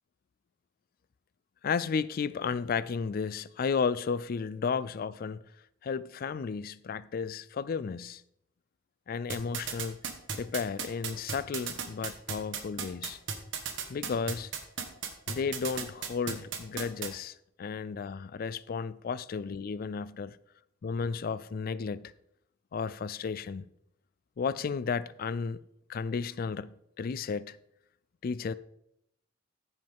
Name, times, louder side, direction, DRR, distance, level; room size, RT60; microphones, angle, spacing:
voice 1, 1.6-5.4 5.8-8.2 9.1-10.0 10.3-13.2 13.9-14.5 15.3-20.4 20.8-22.1 22.7-23.7 24.4-25.6 25.9-27.6 28.2-28.5, left 5 dB, 45° left, 0.3 m, -33 dB
sound 1, 9.3-17.1, right 7 dB, 60° right, 1.3 m, -34 dB
15.0 x 5.4 x 3.5 m
head